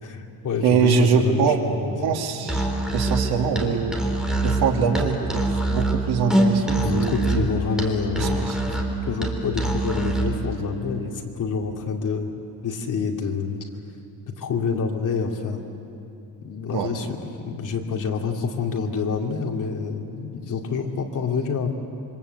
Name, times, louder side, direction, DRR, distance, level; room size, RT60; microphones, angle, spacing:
voice 1, 0.0-1.9 6.7-12.3 12.6-13.6 14.4-15.6 16.4-21.7, left 5 dB, 55° left, 1 dB, 2.7 m, -27 dB
voice 2, 0.6-1.6 2.0-4.0 4.4-7.4 8.2-8.6 16.7-16.9, right 6 dB, 85° right, 2 dB, 2.7 m, -23 dB
Musical instrument, 2.4-10.4, right 2 dB, ahead, 3.0 m, -24 dB
27.0 x 25.0 x 8.2 m, 2.9 s
cardioid pair, 160°, 37 cm